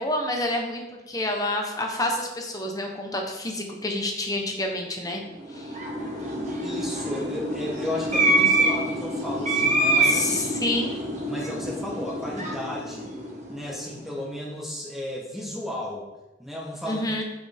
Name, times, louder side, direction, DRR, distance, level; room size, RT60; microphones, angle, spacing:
voice 1, 0.0-5.2 5.5-5.7 10.0-11.0 16.9-17.2, left 1 dB, 20° left, 2 dB, 1.0 m, -28 dB
sound 1, 5.4-13.9, right 2 dB, 40° right, 1.5 m, -26 dB
voice 2, 6.6-10.3 10.6-10.7 11.3-13.1 13.5-16.1 16.4-17.2, left 1 dB, ahead, -3 dB, 1.1 m, -34 dB
7.7 x 5.9 x 3.5 m, 1.1 s
head